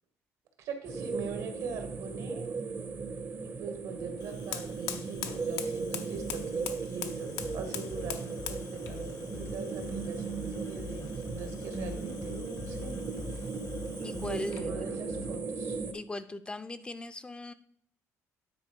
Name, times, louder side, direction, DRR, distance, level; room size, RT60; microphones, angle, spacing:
voice 1, 0.6-2.5 3.4-13.0 13.3-13.4 14.2-15.8, right 5 dB, 85° right, 6 dB, 1.6 m, -42 dB
sound 1, 0.8-15.9, right 4 dB, 30° right, 0.6 m, -37 dB
Fire, 4.2-14.7, left 9 dB, 85° left, 0.7 m, -44 dB
sound 2, 7.2-15.4, left 5 dB, 45° left, 0.8 m, -45 dB
voice 2, 14.0-14.9 15.9-17.5, left 2 dB, 15° left, 11 dB, 0.4 m, -39 dB
9.1 x 4.2 x 5.1 m, 0.62 s
cardioid pair, 110°, 6 cm